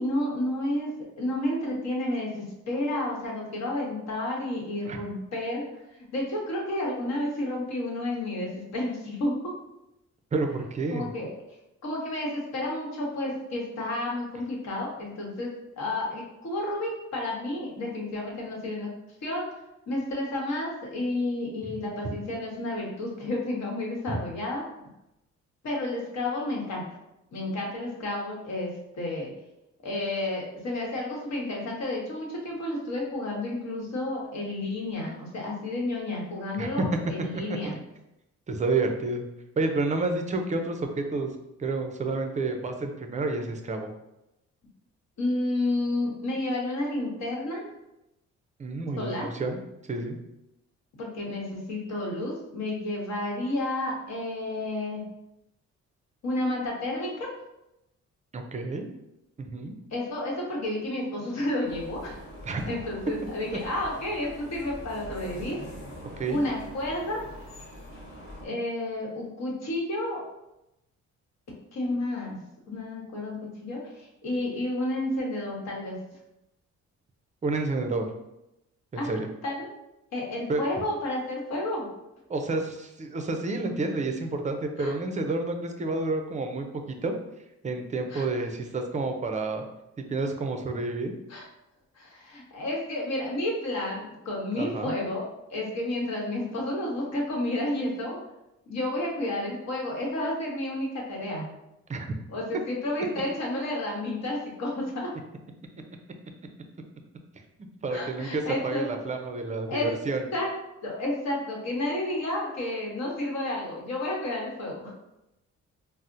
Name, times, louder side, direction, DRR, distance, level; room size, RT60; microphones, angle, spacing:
voice 1, 0.0-5.6 6.0-9.5 10.9-11.3 11.8-18.9 19.2-19.5 19.9-24.6 25.6-26.8 27.3-29.3 29.8-37.7 45.2-47.6 49.0-49.3 51.0-55.0 56.2-57.3 59.9-62.2 62.6-65.6 66.3-67.2 68.4-70.2 71.7-72.4 72.7-76.0 79.0-79.7 80.1-81.9 84.8-84.9 88.1-88.3 91.3-91.4 91.9-98.2 98.7-101.5 102.3-105.1 107.9-108.8 109.7-109.9 110.3-110.5 110.8-114.9, left 1 dB, 60° left, -2 dB, 1.1 m, -31 dB
voice 2, 10.3-11.1 24.1-24.2 36.6-36.9 37.3-37.8 38.5-39.2 39.6-41.3 41.6-43.9 48.6-49.6 49.9-50.2 58.3-58.9 59.4-59.7 62.4-62.7 66.2-66.4 77.4-78.1 78.9-79.3 80.5-80.6 82.3-87.1 87.6-89.6 90.0-91.1 94.5-94.9 101.9-102.2 107.8-110.3, right 3 dB, 25° right, 5 dB, 0.4 m, -29 dB
sound 1, 61.6-68.5, left 1 dB, 45° left, 1.3 m, -43 dB
4.1 x 2.0 x 2.5 m, 0.89 s
cardioid pair, 90°, 30 cm